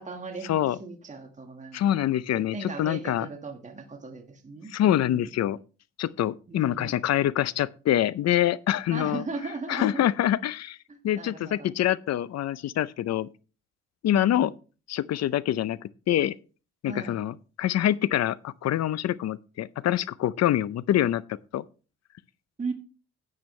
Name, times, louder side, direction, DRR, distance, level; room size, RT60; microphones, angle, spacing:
voice 1, 0.0-1.8 2.3-5.3 6.5-7.0 8.9-10.0 10.9-11.7 14.1-14.5 16.8-17.2 22.6-22.7, right 3 dB, 25° right, 1.7 m, -37 dB
voice 2, 1.7-3.3 4.7-5.6 6.0-9.2 9.7-10.8 11.0-13.3 14.0-14.5 14.9-16.3 16.8-21.6, left 12 dB, 60° left, 0.6 m, -25 dB
10.5 x 8.8 x 3.2 m
cardioid pair, 90°, 30 cm